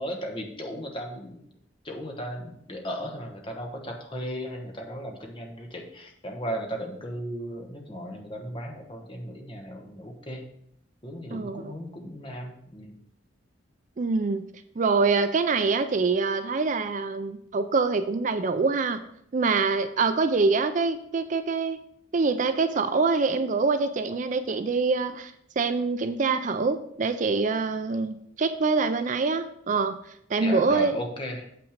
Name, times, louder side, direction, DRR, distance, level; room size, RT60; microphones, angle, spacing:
voice 1, 0.0-1.5 1.8-10.5 11.0-13.0 30.4-31.5, equal, 25° left, 2 dB, 1.2 m, -36 dB
voice 2, 11.3-11.7 14.0-14.5 14.8-19.0 19.3-21.8 22.1-30.0 30.3-30.9, right 4 dB, 40° right, 10 dB, 0.4 m, -25 dB
7.4 x 5.8 x 5.0 m, 0.72 s
head